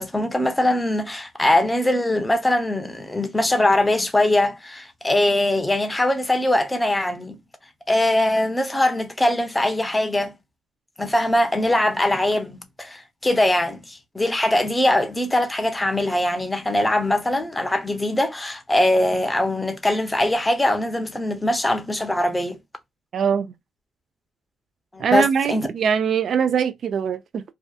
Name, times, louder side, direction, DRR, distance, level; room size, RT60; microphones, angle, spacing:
voice 1, 0.0-7.4 7.9-10.3 11.0-22.6 24.9-25.7, left 1 dB, 15° left, 0.6 m, -21 dB
voice 2, 23.1-23.5 25.0-27.4, right 7 dB, 55° right, 0.3 m, -22 dB
2.7 x 2.3 x 2.3 m
cardioid pair, 90°, 0 cm